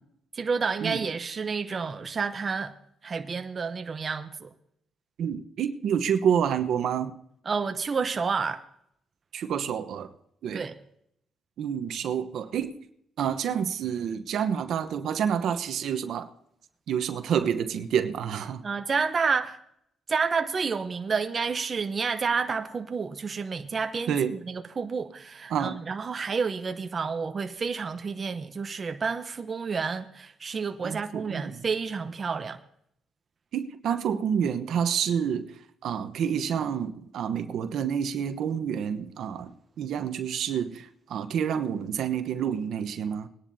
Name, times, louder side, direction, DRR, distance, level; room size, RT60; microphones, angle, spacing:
voice 1, 0.3-2.7 3.0-4.5 7.5-8.6 10.5-10.7 18.6-19.6 20.1-32.6, right 5 dB, 40° right, 0.8 m, -30 dB
voice 2, 5.2-7.1 9.3-10.1 10.4-10.6 11.6-12.7 13.2-16.3 16.9-18.6 24.1-24.4 25.5-25.8 30.8-31.6 33.5-35.5 35.8-43.3, right 8 dB, 70° right, 1.0 m, -28 dB
21.5 x 10.5 x 2.8 m
cardioid pair, 90°, 0 cm